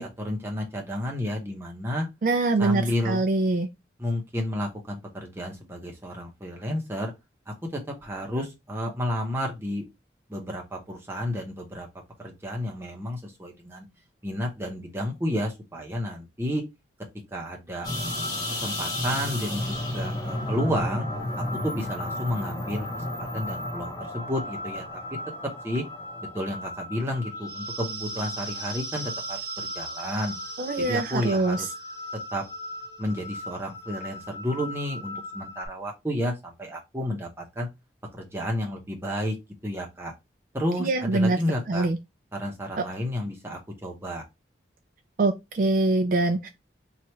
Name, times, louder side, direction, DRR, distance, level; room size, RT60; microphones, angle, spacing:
voice 1, 0.0-2.1 2.6-3.2 4.0-7.1 7.5-9.8 10.3-11.9 12.2-13.9 14.2-16.6 17.3-17.9 18.5-21.1 21.6-24.8 25.6-25.8 26.3-30.4 30.8-31.7 32.3-32.4 33.0-37.7 38.1-39.4 39.6-40.1 40.5-41.9 42.3-44.2, equal, 15° right, 0.8 m, -31 dB
voice 2, 2.2-3.7 30.6-31.7 40.8-41.4 41.7-42.0 42.8-42.9 45.2-46.5, right 2 dB, 45° right, 0.3 m, -24 dB
sound 1, 17.8-35.7, left 1 dB, 20° left, 1.0 m, -34 dB
3.0 x 2.4 x 4.3 m
head